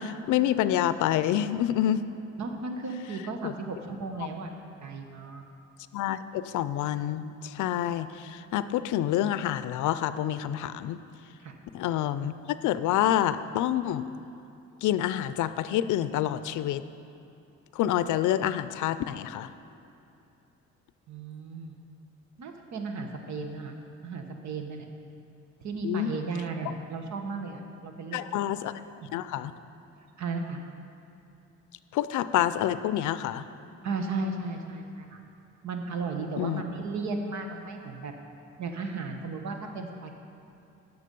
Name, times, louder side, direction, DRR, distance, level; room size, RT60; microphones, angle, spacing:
voice 1, 0.0-2.1 3.4-3.5 5.9-11.0 11.7-14.0 14.8-16.8 17.7-19.5 25.8-26.1 28.1-28.7 29.1-29.5 31.9-33.5 36.4-36.6, left 12 dB, 80° left, 13 dB, 0.5 m, -27 dB
voice 2, 2.4-4.5 4.8-5.4 11.4-11.5 21.1-21.8 22.4-23.8 24.0-24.9 25.6-28.2 30.2-30.6 33.8-35.2 35.6-38.1 38.6-40.1, right 3 dB, 65° right, 4 dB, 1.2 m, -35 dB
11.0 x 6.9 x 5.3 m, 2.8 s
cardioid pair, 90°, 30 cm